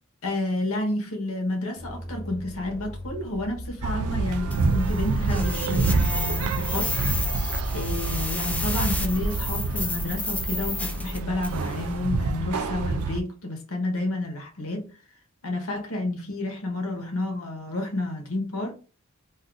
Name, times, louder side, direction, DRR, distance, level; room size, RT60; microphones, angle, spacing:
voice 1, 0.2-7.0 7.3-7.4 7.7-14.9 15.4-18.8, left 2 dB, 75° left, 1.0 m, -30 dB
sound 1, 1.8-11.4, equal, 25° left, 1.2 m, -38 dB
sound 2, 3.8-13.2, right 3 dB, 80° right, 0.4 m, -27 dB
sound 3, 4.5-11.7, left 2 dB, 5° left, 0.4 m, -32 dB
2.5 x 2.5 x 3.7 m
head